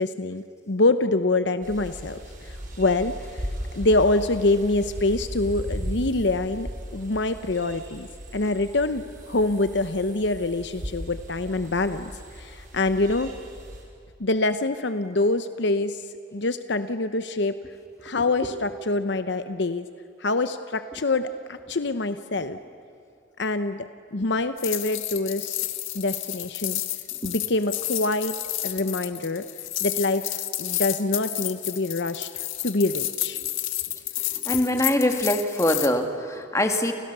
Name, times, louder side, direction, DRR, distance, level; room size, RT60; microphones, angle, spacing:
voice 1, 0.0-3.5 3.7-8.1 8.3-13.3 14.2-16.0 16.3-17.6 18.0-19.8 20.2-22.6 23.4-25.6 25.9-26.8 27.2-28.3 28.6-29.4 29.8-30.3 30.6-32.3 32.6-33.4, left 2 dB, 60° left, 10 dB, 0.9 m, -25 dB
sound 1, 1.6-13.8, equal, 45° right, 5.4 m, -37 dB
sound 2, 24.6-35.9, left 15 dB, 85° left, 1.5 m, -31 dB
voice 2, 34.3-36.9, left 1 dB, 15° left, 5 dB, 2.0 m, -23 dB
30.0 x 29.5 x 6.8 m, 2.5 s
head